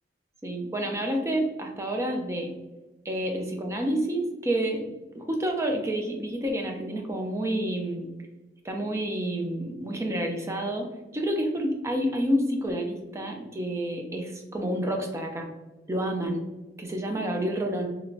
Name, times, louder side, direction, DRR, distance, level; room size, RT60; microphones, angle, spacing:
voice 1, 0.4-2.5 3.1-8.1 8.6-15.5 15.9-16.5 16.8-17.9, right 1 dB, 15° right, 3 dB, 0.3 m, -29 dB
2.9 x 2.1 x 2.5 m, 1.1 s
head